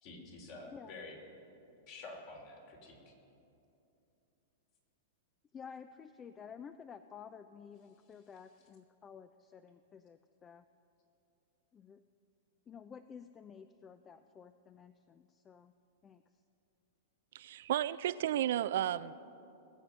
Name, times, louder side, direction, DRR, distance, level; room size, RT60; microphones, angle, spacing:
voice 1, 0.0-1.2 1.9-3.1, left 3 dB, 50° left, 1 dB, 3.2 m, -49 dB
voice 2, 0.7-1.0 5.5-10.6 11.7-12.0 12.7-15.7 16.0-16.2, left 7 dB, 25° left, 11 dB, 0.4 m, -52 dB
voice 3, 17.3-19.1, right 11 dB, 70° right, 16 dB, 0.4 m, -33 dB
20.0 x 7.9 x 5.6 m, 2.8 s
hypercardioid pair, 120°, 0 cm